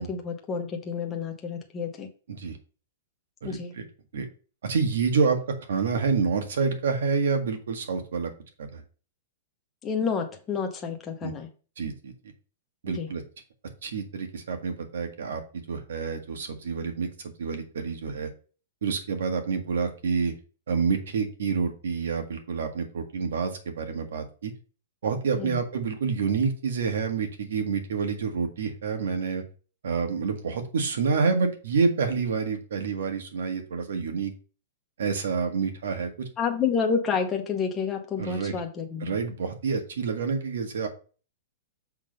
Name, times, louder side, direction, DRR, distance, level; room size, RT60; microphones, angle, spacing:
voice 1, 0.0-2.1 3.4-3.7 9.8-11.5 12.9-13.1 25.4-25.6 36.4-39.2, left 6 dB, 15° left, 3 dB, 0.9 m, -29 dB
voice 2, 3.4-3.8 4.1-4.3 4.6-5.4 5.7-8.3 8.6-8.8 11.2-11.3 11.8-12.1 12.8-13.2 13.8-18.3 18.8-20.3 20.7-24.5 25.0-29.4 29.8-34.3 35.0-36.3 38.2-38.5 39.0-40.9, right 5 dB, 85° right, 6 dB, 1.7 m, -28 dB
7.2 x 3.8 x 5.3 m, 0.37 s
supercardioid pair, 175°, 0 cm